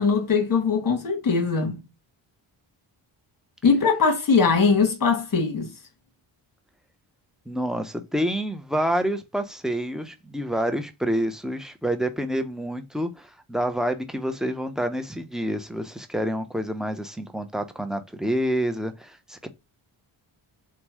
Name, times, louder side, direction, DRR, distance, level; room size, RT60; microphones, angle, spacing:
voice 1, 0.0-1.8 3.6-5.7, left 5 dB, 40° left, 1.3 m, -21 dB
voice 2, 7.5-19.5, equal, ahead, 0.5 m, -28 dB
3.0 x 2.2 x 2.9 m
supercardioid pair, 40°, 50 cm